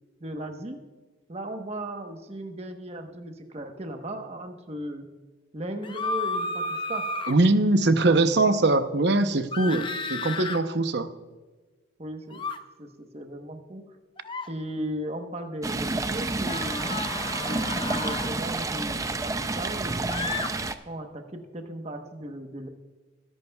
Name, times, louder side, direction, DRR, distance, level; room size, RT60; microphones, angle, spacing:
voice 1, 0.2-0.8 1.3-5.1 5.5-7.1 8.0-8.4 9.6-9.9 12.0-12.4 12.8-13.8 14.5-16.9 17.4-20.5 20.9-22.7, right 1 dB, 35° right, 5 dB, 1.0 m, -36 dB
sound 1, 5.8-7.3 9.5-10.6 12.3-12.6 14.2-14.5 16.4-18.3 20.1-20.5, left 3 dB, 25° left, 0.6 m, -32 dB
voice 2, 7.3-9.8 10.1-11.1, right 2 dB, 55° right, 9 dB, 0.8 m, -22 dB
Stream, 15.6-20.7, right 3 dB, 15° right, 0.4 m, -29 dB
21.0 x 11.0 x 2.3 m, 1.3 s
head